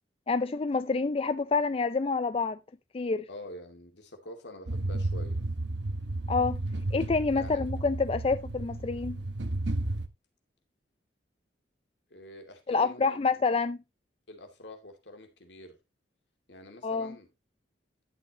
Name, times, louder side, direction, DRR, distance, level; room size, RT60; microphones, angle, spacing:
voice 1, 0.3-2.6 2.9-3.2 6.3-6.6 6.9-9.2 12.7-13.8 16.8-17.1, left 4 dB, 30° left, 0.4 m, -27 dB
voice 2, 3.3-5.4 7.3-7.6 12.1-13.2 14.3-15.8 16.5-17.3, left 1 dB, 80° left, 2.5 m, -46 dB
sound 1, 4.7-10.1, right 2 dB, 75° right, 1.0 m, -33 dB
11.5 x 8.1 x 2.9 m
head